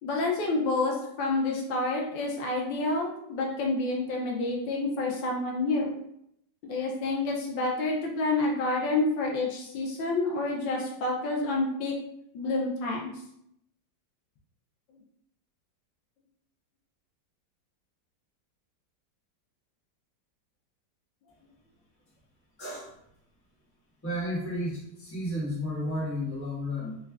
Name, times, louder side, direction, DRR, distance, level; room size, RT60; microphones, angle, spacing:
voice 1, 0.0-5.9 6.6-12.0 12.3-13.1, left 2 dB, 85° left, -1 dB, 1.4 m, -28 dB
voice 2, 22.6-22.9 24.0-27.0, left 1 dB, 10° left, -8 dB, 0.8 m, -32 dB
4.1 x 2.2 x 2.3 m, 0.75 s
omnidirectional pair, 2.0 m